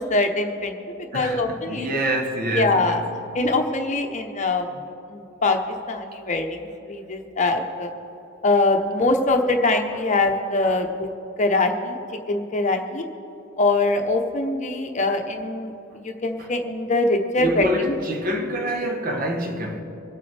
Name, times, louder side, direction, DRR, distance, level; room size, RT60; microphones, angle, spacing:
voice 1, 0.0-2.0 2.5-3.0 3.3-4.7 5.1-5.6 5.9-7.9 8.4-11.1 11.4-12.0 12.3-13.0 13.6-15.7 16.0-17.9, left 2 dB, 35° left, 0.9 m, -23 dB
voice 2, 1.1-3.0 16.4-16.5 17.4-19.8, equal, 45° right, 1.2 m, -26 dB
25.5 x 8.5 x 3.4 m
head